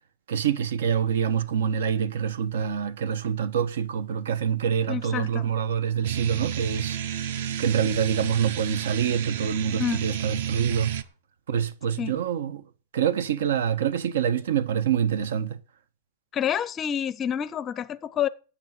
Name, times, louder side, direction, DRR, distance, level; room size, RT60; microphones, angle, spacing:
voice 1, 0.3-7.2 7.6-11.0 11.5-12.6 12.9-15.6, right 8 dB, 90° right, 1.2 m, -26 dB
voice 2, 4.9-5.4 9.8-10.0 12.0-12.1 16.3-18.3, left 9 dB, 15° left, 0.5 m, -28 dB
sound 1, 6.0-11.0, right 9 dB, 55° right, 0.9 m, -31 dB
8.7 x 8.5 x 9.2 m
supercardioid pair, 180°, 0 cm